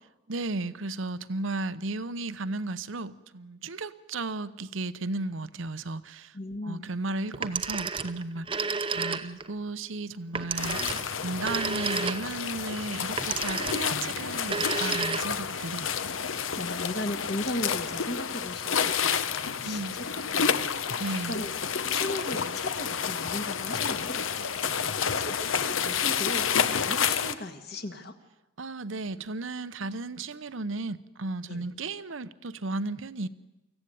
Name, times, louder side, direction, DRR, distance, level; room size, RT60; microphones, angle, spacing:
voice 1, 0.3-6.4 6.6-15.9 19.6-20.0 21.0-21.4 28.6-33.3, right 2 dB, 75° right, 15 dB, 0.8 m, -34 dB
voice 2, 6.3-6.9 15.7-16.1 16.3-20.1 20.3-21.5 21.9-24.8 25.2-28.1 31.5-31.6, left 1 dB, 50° left, 6 dB, 1.8 m, -37 dB
Telephone, 7.3-9.5 10.3-12.5 13.2-14.0 14.4-15.6, right 5 dB, 25° right, 0.8 m, -31 dB
sound 1, 10.6-27.3, left 7 dB, 80° left, 1.0 m, -30 dB
24.5 x 15.0 x 9.3 m, 1.0 s
head